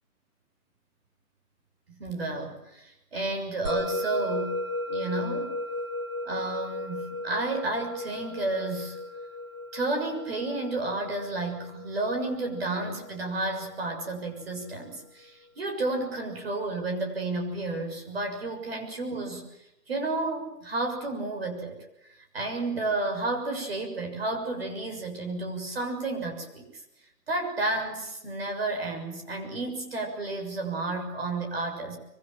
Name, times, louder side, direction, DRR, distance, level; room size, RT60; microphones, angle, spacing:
voice 1, 1.9-5.5 6.2-9.0 9.7-19.4 19.9-21.8 22.3-26.7 27.3-32.0, right 2 dB, 40° right, 3 dB, 6.7 m, -31 dB
Musical instrument, 3.6-14.2, left 2 dB, 20° right, 1.5 m, -35 dB
25.5 x 24.0 x 7.5 m, 0.88 s
hypercardioid pair, 180°, 46 cm